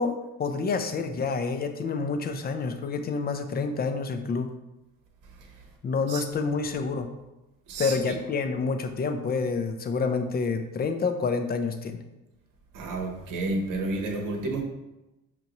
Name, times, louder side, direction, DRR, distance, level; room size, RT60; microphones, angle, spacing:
voice 1, 0.0-4.5 5.8-7.1 7.8-12.0, left 4 dB, 25° left, 7 dB, 0.4 m, -28 dB
voice 2, 7.7-8.2 12.7-14.6, right 2 dB, 55° right, 2 dB, 0.9 m, -31 dB
5.5 x 2.6 x 2.9 m, 1.0 s
supercardioid pair, 90°, 38 cm